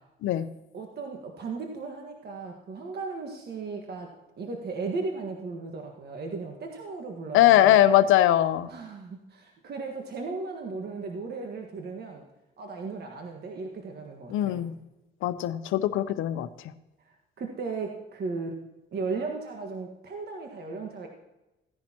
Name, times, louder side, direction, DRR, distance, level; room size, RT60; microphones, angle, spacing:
voice 1, 0.7-7.8 8.6-12.2 12.6-14.6 17.4-18.6 18.9-21.1, right 4 dB, 55° right, 2 dB, 1.5 m, -36 dB
voice 2, 7.3-8.7 14.3-14.7 15.2-16.5, left 12 dB, 85° left, 12 dB, 0.7 m, -21 dB
16.0 x 10.5 x 2.9 m, 0.99 s
cardioid pair, 90°, 20 cm